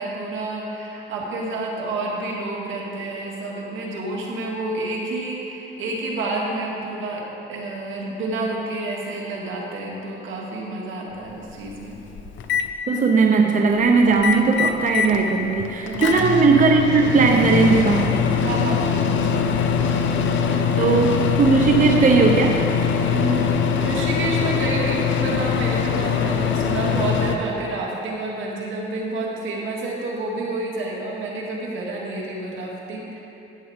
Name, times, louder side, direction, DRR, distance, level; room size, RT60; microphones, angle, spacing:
voice 1, 0.0-7.2 7.5-12.0 15.8-16.4 18.4-20.9 23.1-33.2, right 2 dB, 80° right, -2 dB, 1.9 m, -29 dB
Microwave oven, 11.1-11.2 11.7-12.7 14.1-15.2 15.6-27.4, left 7 dB, 75° left, 0.7 m, -22 dB
voice 2, 12.9-18.1 20.8-22.6, right 4 dB, 40° right, 3 dB, 0.7 m, -18 dB
13.0 x 8.3 x 3.6 m, 2.9 s
cardioid pair, 90°, 20 cm